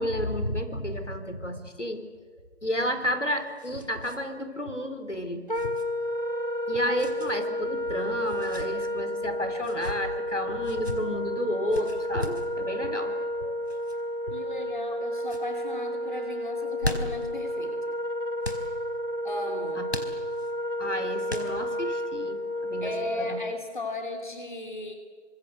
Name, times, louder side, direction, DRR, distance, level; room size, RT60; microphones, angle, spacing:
voice 1, 0.0-2.0 2.6-5.4 6.7-13.6 14.3-14.4 19.8-19.9 20.8-23.4, equal, 80° left, 8 dB, 4.3 m, -31 dB
Grabbing and punching with gloves, 3.0-4.2 4.5-4.6 5.5-5.8 7.0-7.3 8.2-8.7 9.6-10.0 10.6-11.0 11.7-12.5 13.7-14.0 14.6-15.0 15.2-15.5 16.5-17.3 18.4-18.7 19.9-20.5 21.3-21.8, left 1 dB, 60° left, 4.3 m, -36 dB
Wind instrument woodwind instrument, 5.5-23.6, left 1 dB, 45° right, 1.9 m, -31 dB
voice 2, 14.3-17.8 19.2-19.9 22.8-24.9, left 2 dB, 40° left, 4 dB, 3.0 m, -36 dB
28.5 x 25.5 x 8.1 m, 1.5 s
figure-of-eight pair, 170°, 36 cm